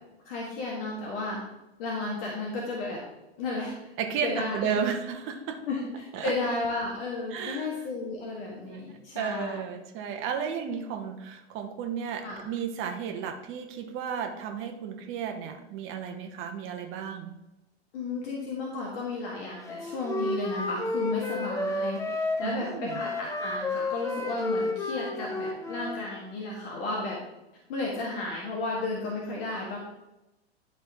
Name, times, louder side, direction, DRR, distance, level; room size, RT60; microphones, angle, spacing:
voice 1, 0.3-1.4 1.8-3.0 3.4-3.7 4.2-4.7 5.7-9.6 12.2-12.4 17.9-27.2 27.7-29.8, left 3 dB, 60° left, -3 dB, 1.8 m, -33 dB
voice 2, 4.0-5.6 6.1-6.3 7.3-7.7 8.7-8.8 9.1-17.3 22.4-23.0, right 7 dB, 40° right, 4 dB, 1.1 m, -33 dB
Wind instrument woodwind instrument, 19.7-26.0, left 2 dB, 10° left, 0.7 m, -31 dB
11.5 x 4.4 x 3.6 m, 0.97 s
figure-of-eight pair, 95°, 33 cm